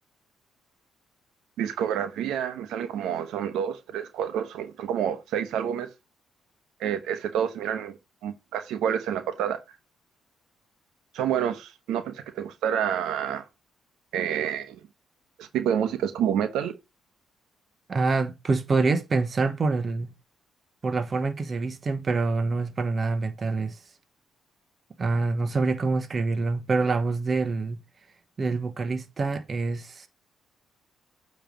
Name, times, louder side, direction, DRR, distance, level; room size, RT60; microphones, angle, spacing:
voice 1, 1.6-5.9 6.8-9.6 11.1-13.4 14.1-14.8 15.4-16.8, right 9 dB, 85° right, 0.9 m, -28 dB
voice 2, 17.9-20.1 20.8-23.8 25.0-27.8 28.4-30.1, right 3 dB, 35° right, 1.1 m, -26 dB
8.8 x 3.2 x 5.2 m
cardioid pair, 90°, 0 cm